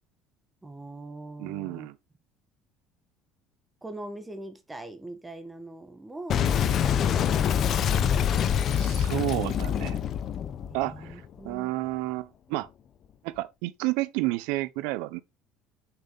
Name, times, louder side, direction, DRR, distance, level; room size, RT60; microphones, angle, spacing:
voice 1, 0.6-1.9 3.8-6.5 7.0-7.6 10.7-11.7, right 2 dB, 15° right, 1.5 m, -42 dB
voice 2, 1.4-1.9 8.7-10.0 10.7-12.7 13.2-15.2, right 19 dB, 80° right, 0.7 m, -31 dB
Boom, 6.3-11.5, left 8 dB, 50° left, 0.9 m, -25 dB
6.9 x 5.7 x 4.0 m
supercardioid pair, 105°, 0 cm